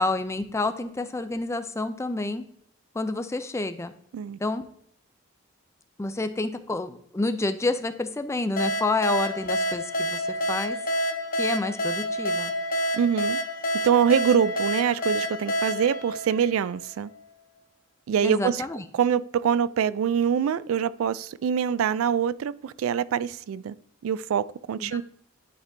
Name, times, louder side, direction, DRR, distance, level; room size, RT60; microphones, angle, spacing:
voice 1, 0.0-2.4 2.9-3.9 4.4-4.7 6.0-10.8 11.4-12.5 18.2-18.8 24.8-25.0, left 2 dB, 15° left, 0.4 m, -29 dB
sound 1, 8.6-17.0, equal, 40° left, 0.7 m, -28 dB
voice 2, 12.9-13.4 13.8-17.1 18.1-18.6 18.9-23.7 24.0-25.0, right 8 dB, 80° right, 0.3 m, -24 dB
10.5 x 4.3 x 2.6 m
head